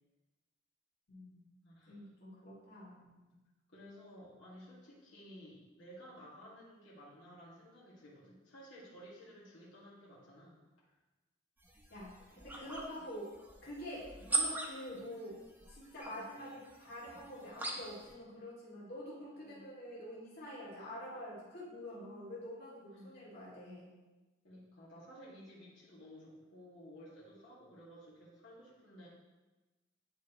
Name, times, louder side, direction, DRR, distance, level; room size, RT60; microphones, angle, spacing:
voice 1, 1.1-1.4 1.9-3.1 11.9-13.3 13.6-15.4 15.7-23.9, equal, 60° left, -7 dB, 2.1 m, -47 dB
voice 2, 1.6-2.0 3.7-10.9 14.1-14.3 16.1-16.2 19.3-19.7 22.9-23.2 24.4-29.1, equal, 85° left, -7 dB, 2.0 m, -55 dB
sound 1, 11.6-18.1, right 3 dB, 10° right, 0.8 m, -41 dB
10.0 x 4.2 x 3.0 m, 1.1 s
head